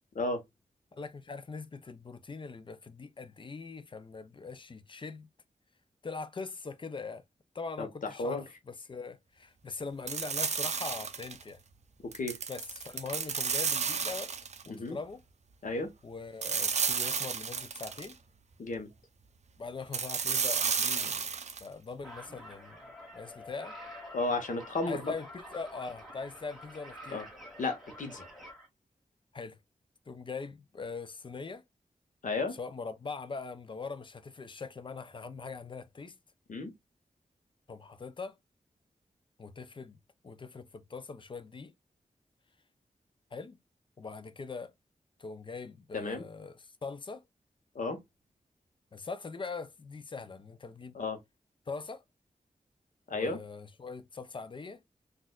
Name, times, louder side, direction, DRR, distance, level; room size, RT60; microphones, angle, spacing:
voice 1, 0.9-5.3 6.0-7.2 7.5-11.6 12.5-14.3 14.6-15.2 16.0-18.2 19.6-21.3 21.6-22.8 23.1-23.8 24.8-27.2 29.3-29.6 30.1-31.6 32.5-36.2 37.7-38.4 39.4-40.0 40.2-41.7 43.3-43.6 44.0-44.7 45.2-47.2 48.9-51.0 51.7-52.0 53.1-54.8, left 4 dB, 40° left, 0.5 m, -42 dB
voice 2, 7.8-8.4 12.0-12.4 14.7-15.0 15.6-15.9 18.6-18.9 24.1-25.1 27.1-27.3 27.6-28.2 32.2-32.5 36.5-36.7 45.9-46.2 47.7-48.0 50.9-51.2 53.1-53.4, left 3 dB, 75° left, 1.0 m, -33 dB
sound 1, 10.1-11.4 12.1-14.7 16.4-18.1 19.9-21.6, right 6 dB, 55° right, 0.5 m, -32 dB
sound 2, 22.0-28.7, equal, ahead, 1.6 m, -48 dB
4.1 x 2.5 x 2.3 m
wide cardioid pair, 120°, 14 cm